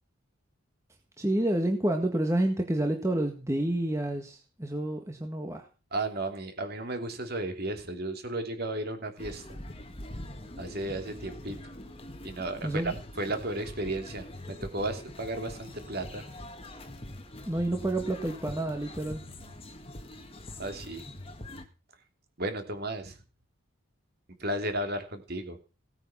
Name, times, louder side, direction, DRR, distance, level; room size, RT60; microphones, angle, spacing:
voice 1, 1.2-5.6 12.6-12.9 17.5-19.2, right 1 dB, 15° right, 3 dB, 1.6 m, -29 dB
voice 2, 5.9-9.5 10.6-11.6 12.2-16.3 20.6-21.0 22.4-23.2 24.4-25.6, right 2 dB, 45° right, 6 dB, 2.9 m, -34 dB
sound 1, 9.2-21.6, left 1 dB, 25° left, 1.8 m, -43 dB
17.5 x 9.0 x 5.8 m, 0.34 s
head